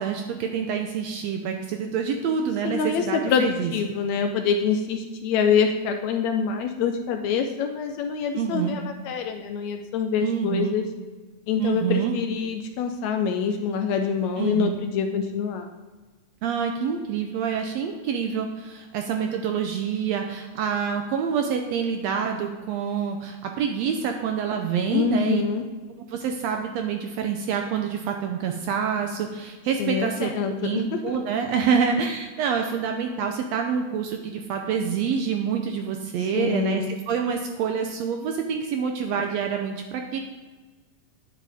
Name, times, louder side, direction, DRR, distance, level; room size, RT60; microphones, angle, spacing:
voice 1, 0.0-3.7 8.3-8.8 10.2-10.7 11.6-12.1 14.4-14.8 16.4-25.4 26.1-40.2, right 7 dB, 75° right, 4 dB, 1.6 m, -27 dB
voice 2, 2.6-10.9 11.5-15.7 24.9-25.6 29.8-31.2 36.3-37.0, left 6 dB, 75° left, 5 dB, 1.7 m, -25 dB
10.0 x 7.5 x 3.5 m, 1.3 s
omnidirectional pair, 3.6 m